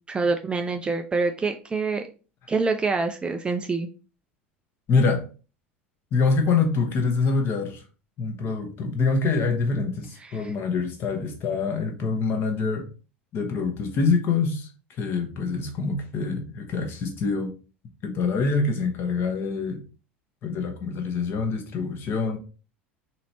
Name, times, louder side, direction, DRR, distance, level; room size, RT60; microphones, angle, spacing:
voice 1, 0.1-2.1 2.5-3.9 10.2-10.5, right 4 dB, 15° right, 6 dB, 0.4 m, -26 dB
voice 2, 4.9-5.2 6.1-7.8 8.2-12.9 13.3-14.7 15.0-17.5 18.0-19.8 20.4-22.4, left 4 dB, 35° left, 4 dB, 1.0 m, -25 dB
4.1 x 3.0 x 2.7 m, 0.35 s
figure-of-eight pair, 75°, 6 cm